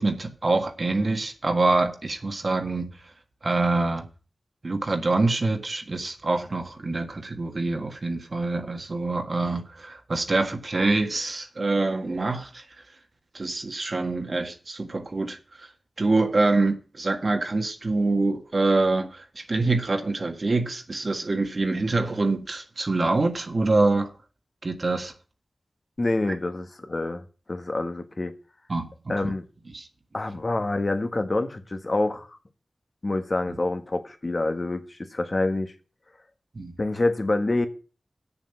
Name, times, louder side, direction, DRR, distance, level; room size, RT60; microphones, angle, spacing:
voice 1, 0.0-2.9 3.4-4.1 4.6-12.6 13.3-15.7 16.0-24.1 24.6-25.1 28.7-29.3 29.7-29.9 36.5-36.7, right 3 dB, 60° right, 1.6 m, -25 dB
voice 2, 26.0-27.2 27.5-28.3 29.1-29.4 30.1-32.4 33.0-35.7 36.8-37.7, left 2 dB, 50° left, 1.5 m, -27 dB
7.7 x 7.0 x 7.0 m
cardioid pair, 45°, 0 cm